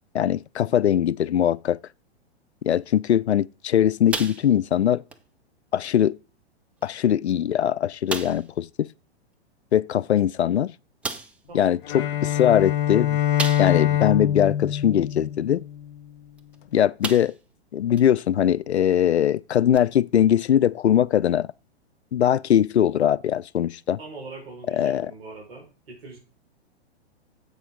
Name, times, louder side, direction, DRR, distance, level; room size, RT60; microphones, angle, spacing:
voice 1, 0.1-1.8 2.6-5.0 5.7-6.2 6.8-8.9 9.7-10.7 11.5-13.2 13.6-15.6 16.7-17.3 17.7-21.5 22.1-24.0 24.7-25.1, left 10 dB, 75° left, 0.5 m, -21 dB
sound 1, 4.1-4.8 5.1-5.3 5.8-5.9 6.8-6.9 7.3-7.4 8.1-8.5 10.2-10.3 11.0-11.4 13.4-14.0 14.5-14.6 16.4-16.6 17.0-17.5 18.0-18.1 19.7-19.8, right 3 dB, 5° right, 0.4 m, -32 dB
voice 2, 11.5-11.8 24.0-26.2, right 3 dB, 60° right, 4.8 m, -42 dB
Bowed string instrument, 11.8-16.1, left 11 dB, 50° left, 1.0 m, -24 dB
10.5 x 7.9 x 3.7 m
figure-of-eight pair, 110°, 33 cm